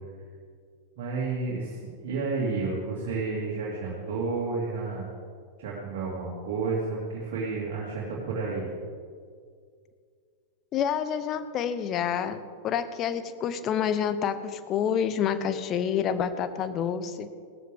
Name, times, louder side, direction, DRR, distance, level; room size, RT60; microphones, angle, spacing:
voice 1, 1.0-5.0 5.6-8.7, right 4 dB, 50° right, -5 dB, 2.7 m, -31 dB
voice 2, 10.7-17.3, left 8 dB, 30° left, 11 dB, 0.9 m, -28 dB
17.5 x 13.5 x 3.7 m, 2.1 s
figure-of-eight pair, 90°, 0 cm